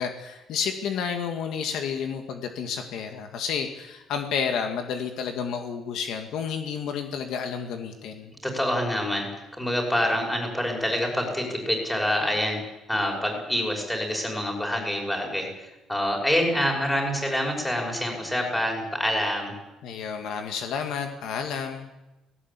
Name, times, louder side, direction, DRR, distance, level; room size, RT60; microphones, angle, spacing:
voice 1, 0.0-8.3 19.8-21.9, left 6 dB, 70° left, 5 dB, 2.2 m, -31 dB
voice 2, 8.4-9.3 9.6-12.6 12.9-15.5 15.9-19.5, equal, 5° left, 0 dB, 5.7 m, -26 dB
18.5 x 18.0 x 8.5 m, 0.99 s
cardioid pair, 160°, 0 cm